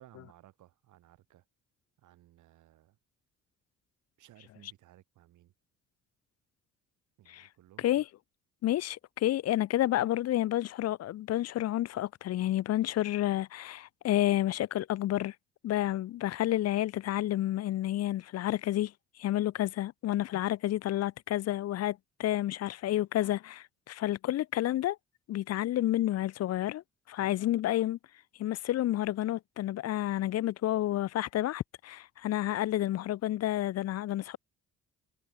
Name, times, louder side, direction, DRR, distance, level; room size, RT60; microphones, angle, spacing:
voice 1, 0.0-1.5 2.0-3.0 4.2-5.5 7.2-8.0 27.2-27.4, right 14 dB, 80° right, 2.5 m, -58 dB
voice 2, 8.6-15.3 15.6-18.9 19.2-25.0 25.3-28.0 28.4-34.4, left 14 dB, 55° left, 0.5 m, -30 dB
cardioid pair, 90°, 30 cm